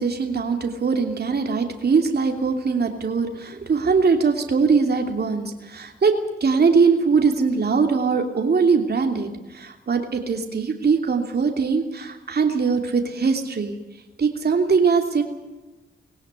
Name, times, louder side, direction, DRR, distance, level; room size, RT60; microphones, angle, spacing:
voice 1, 0.0-6.1 6.4-13.7 14.2-15.2, right 5 dB, 50° right, 4 dB, 2.9 m, -21 dB
19.5 x 17.0 x 9.7 m, 1.1 s
supercardioid pair, 50°, 21 cm